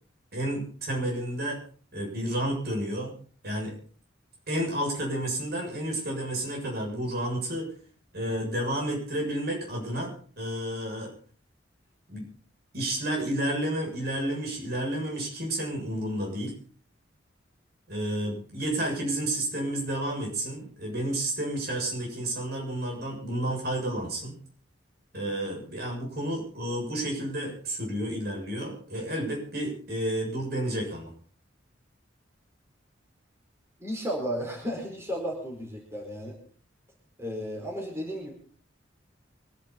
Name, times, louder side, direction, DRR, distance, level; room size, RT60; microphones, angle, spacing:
voice 1, 0.3-1.6 1.9-3.1 3.4-3.8 4.5-7.7 8.1-11.1 12.1-12.3 12.7-16.5 17.9-24.3 25.1-31.1, right 1 dB, 55° right, 0 dB, 7.3 m, -31 dB
voice 2, 33.8-36.3 37.2-38.3, equal, 15° right, 0 dB, 4.7 m, -33 dB
25.0 x 11.5 x 4.1 m, 0.43 s
head